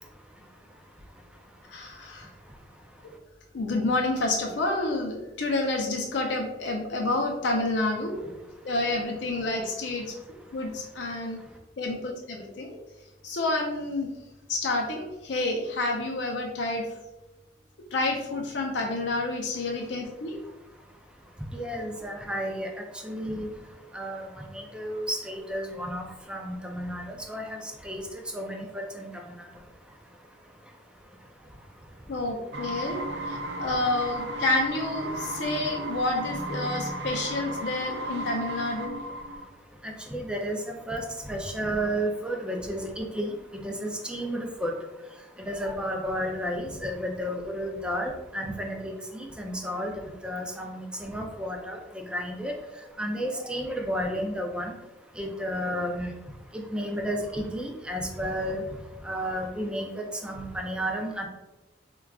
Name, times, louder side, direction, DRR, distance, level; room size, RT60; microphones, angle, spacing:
voice 1, 0.0-3.2 8.4-8.7 10.0-11.6 20.3-33.7 35.1-35.4 36.6-37.1 38.8-61.3, equal, 5° right, 2 dB, 0.3 m, -34 dB
voice 2, 1.7-2.3 3.5-8.2 8.6-10.1 10.5-11.4 11.8-12.8 13.2-14.1 14.5-16.8 17.9-20.4 32.1-33.0 33.2-39.0, left 2 dB, 75° left, 1 dB, 0.5 m, -29 dB
sound 1, 32.5-39.4, right 1 dB, 70° right, 0.4 m, -34 dB
4.6 x 2.2 x 2.3 m, 1.1 s
head